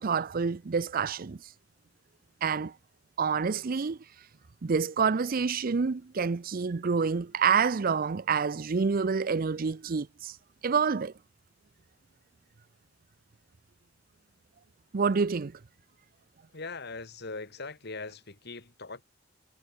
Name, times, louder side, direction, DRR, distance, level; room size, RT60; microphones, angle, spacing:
voice 1, 0.0-1.4 2.4-2.7 3.2-4.0 4.6-10.4 10.6-11.1 14.9-15.6, right 5 dB, 50° right, 0.5 m, -27 dB
voice 2, 16.5-19.0, left 3 dB, 55° left, 2.5 m, -40 dB
head